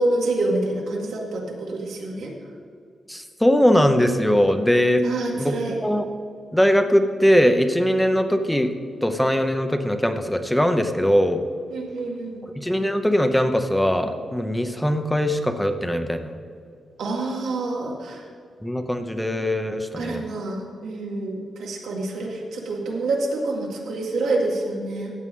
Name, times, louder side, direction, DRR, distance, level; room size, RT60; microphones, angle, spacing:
voice 1, 0.0-2.3 5.0-5.8 11.7-12.4 17.0-18.2 20.0-25.1, right 2 dB, 90° right, -2 dB, 2.0 m, -27 dB
voice 2, 3.1-5.0 5.4-5.5 5.8-6.0 6.5-8.7 9.0-11.4 12.6-16.3 18.6-20.2, equal, 5° left, 7 dB, 0.7 m, -20 dB
14.5 x 8.1 x 3.7 m, 2.2 s
cardioid pair, 105°, 0 cm